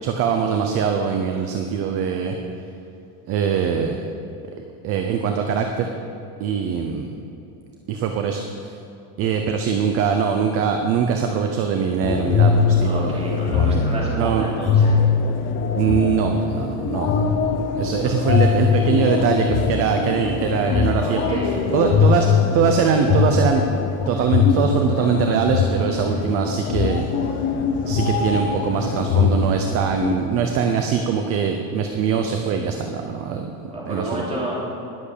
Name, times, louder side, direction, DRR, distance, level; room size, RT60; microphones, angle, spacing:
voice 1, 0.0-2.4 3.3-4.1 4.8-5.9 6.4-7.2 7.9-8.8 9.2-14.5 15.8-17.2 17.7-23.6 24.1-27.1 27.9-33.5 33.9-34.2, right 7 dB, 30° right, 4 dB, 0.8 m, -22 dB
sound 1, 12.0-30.1, left 6 dB, 25° left, 0.7 m, -21 dB
voice 2, 12.8-15.0 18.0-18.1 20.8-21.6 33.7-34.7, right 1 dB, 15° right, -5 dB, 3.4 m, -30 dB
20.0 x 7.9 x 6.8 m, 2.8 s
cardioid pair, 175°, 44 cm